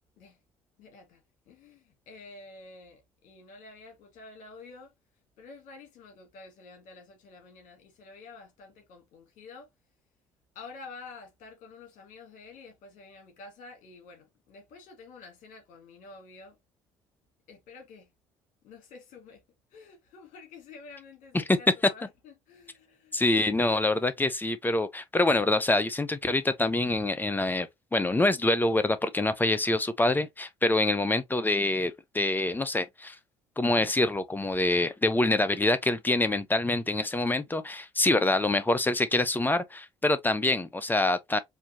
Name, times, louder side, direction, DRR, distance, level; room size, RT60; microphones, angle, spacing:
voice 1, 0.8-1.2 1.5-4.9 5.4-9.7 10.6-16.6 17.5-18.1 18.6-19.4 19.7-23.3, left 4 dB, 60° left, 1.8 m, -49 dB
voice 2, 23.1-33.1 33.6-41.4, left 2 dB, 10° left, 0.7 m, -26 dB
4.5 x 2.8 x 2.7 m
hypercardioid pair, 55°, 15 cm